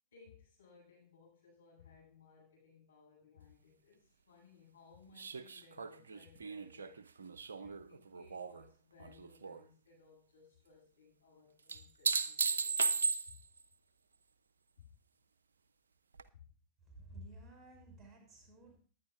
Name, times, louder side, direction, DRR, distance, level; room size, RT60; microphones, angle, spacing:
voice 1, 0.1-7.0 7.6-12.9 13.3-13.4 14.8-14.9 16.3-16.5, left 5 dB, 75° left, -4 dB, 7.4 m, -62 dB
sound 1, 5.2-8.6 9.0-9.6 11.7-13.6 16.2-16.3, right 4 dB, 70° right, 0.4 m, -36 dB
voice 2, 16.9-18.8, right 1 dB, 10° right, 1 dB, 5.6 m, -53 dB
19.5 x 9.8 x 2.5 m, 0.40 s
figure-of-eight pair, 90°, 0 cm